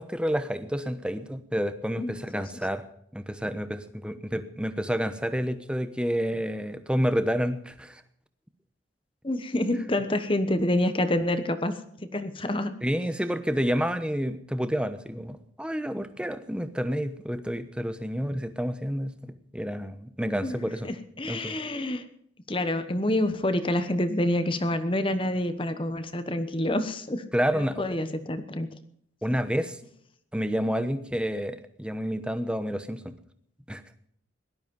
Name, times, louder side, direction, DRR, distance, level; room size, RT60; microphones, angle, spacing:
voice 1, 0.0-2.8 3.1-8.0 12.8-20.9 21.2-21.6 27.3-28.0 29.2-29.8 30.3-33.1 33.7-33.8, equal, 5° right, 10 dB, 1.0 m, -29 dB
voice 2, 2.0-2.4 9.2-11.8 12.1-12.8 20.4-20.6 20.8-22.1 22.5-28.7, left 1 dB, 25° left, 10 dB, 1.0 m, -27 dB
17.5 x 12.5 x 5.4 m, 0.70 s
head